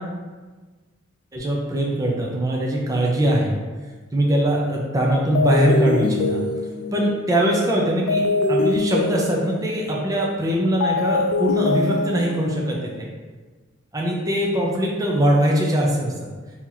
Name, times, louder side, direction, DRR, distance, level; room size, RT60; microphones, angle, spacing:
voice 1, 1.3-3.6 4.1-6.4 6.9-8.2 8.5-13.1 13.9-16.3, right 1 dB, 15° right, -2 dB, 0.4 m, -21 dB
sound 1, 5.3-13.0, left 3 dB, 75° left, 0.3 m, -24 dB
2.9 x 2.8 x 3.7 m, 1.3 s
head